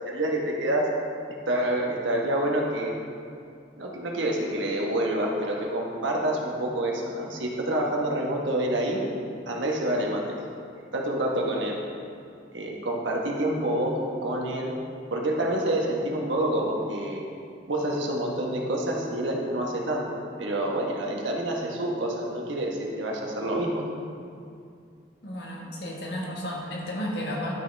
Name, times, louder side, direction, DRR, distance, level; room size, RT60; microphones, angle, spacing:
voice 1, 0.1-0.9 1.3-2.9 3.8-9.0 9.5-10.4 10.7-11.8 12.5-14.7 15.1-17.3 17.7-20.1 20.4-23.8, right 1 dB, 90° right, -1 dB, 1.4 m, -27 dB
voice 2, 25.2-27.5, equal, 65° left, -2 dB, 1.6 m, -33 dB
11.5 x 6.6 x 3.5 m, 2.4 s
head